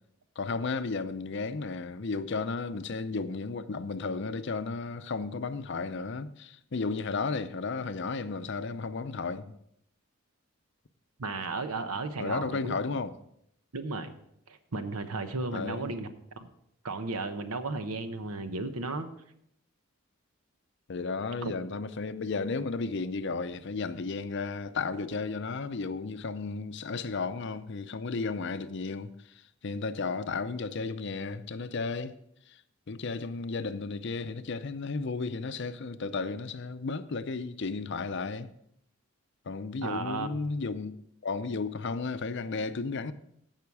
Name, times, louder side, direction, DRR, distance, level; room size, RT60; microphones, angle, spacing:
voice 1, 0.4-9.5 12.2-13.1 15.5-16.0 20.9-32.2 32.5-32.6 32.9-38.5 39.5-40.9 41.2-43.1, left 4 dB, 55° left, 0.5 m, -33 dB
voice 2, 11.2-12.8 13.7-14.1 14.5-16.1 16.4-16.5 16.8-19.1 21.4-21.5 39.8-40.4, right 3 dB, 85° right, 1.0 m, -34 dB
15.5 x 5.7 x 4.7 m
head